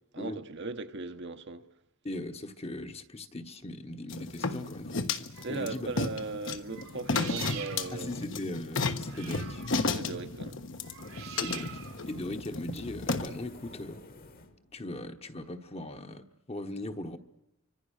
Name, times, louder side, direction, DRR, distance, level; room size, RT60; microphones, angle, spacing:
voice 1, 0.1-1.7 5.4-8.3 9.9-10.6, right 3 dB, 55° right, 1.2 m, -38 dB
voice 2, 2.0-5.1 5.5-5.9 7.9-9.6 11.4-11.8 12.1-14.0 14.7-17.2, left 1 dB, 30° left, 1.2 m, -39 dB
sound 1, 4.1-13.3, left 3 dB, 65° left, 1.3 m, -33 dB
sound 2, 5.3-5.9 6.6-13.7, right 8 dB, 80° right, 2.5 m, -46 dB
sound 3, 11.0-15.6, left 2 dB, 45° left, 1.6 m, -53 dB
29.5 x 25.0 x 6.6 m
head